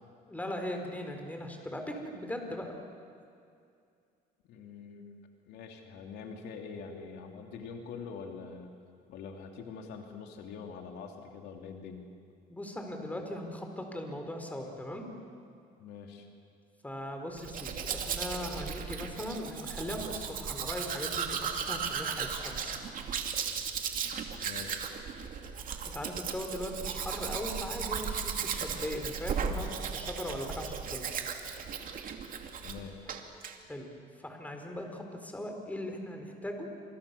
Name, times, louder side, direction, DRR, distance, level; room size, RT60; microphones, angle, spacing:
voice 1, 0.3-2.7 12.5-15.1 16.8-22.8 25.9-31.0 33.7-33.9 34.2-36.7, left 1 dB, 10° left, 3 dB, 4.6 m, -39 dB
voice 2, 4.5-5.1 5.5-8.7 9.1-12.0 15.8-16.3 24.4-24.8 32.6-33.0, left 5 dB, 85° left, 3 dB, 3.1 m, -44 dB
Domestic sounds home sounds, 17.4-32.8 33.1-33.5, right 7 dB, 55° right, 2.7 m, -36 dB
30.0 x 27.5 x 7.1 m, 2.4 s
cardioid pair, 110°, 17 cm